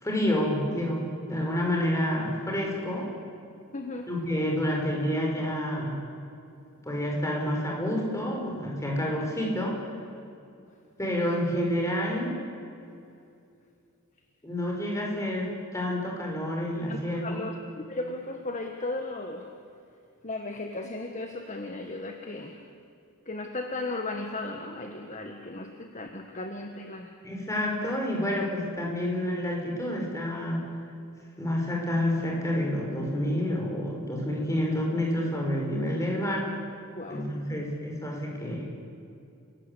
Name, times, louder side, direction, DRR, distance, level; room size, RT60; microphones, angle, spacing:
voice 1, 0.0-3.1 4.1-6.0 6.8-9.8 11.0-12.4 14.4-17.4 27.2-30.7 31.4-36.5 37.1-38.7, left 1 dB, 15° left, -1 dB, 5.6 m, -29 dB
voice 2, 3.7-4.1 16.9-19.5 20.2-22.7 23.2-27.1 36.9-37.6, left 2 dB, 35° left, 4 dB, 1.5 m, -36 dB
30.0 x 17.0 x 8.5 m, 2.6 s
head